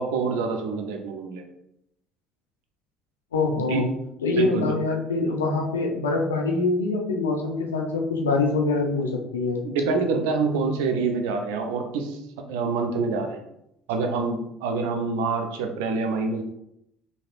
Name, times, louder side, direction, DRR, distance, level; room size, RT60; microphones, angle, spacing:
voice 1, 0.0-1.4 3.5-3.8 4.4-4.8 9.6-12.2 12.5-13.4 13.9-16.4, right 4 dB, 75° right, 5 dB, 0.4 m, -26 dB
voice 2, 3.3-3.9 4.2-9.6, left 3 dB, 90° left, 1 dB, 0.5 m, -24 dB
3.2 x 2.7 x 2.4 m, 0.80 s
hypercardioid pair, 60°, 0 cm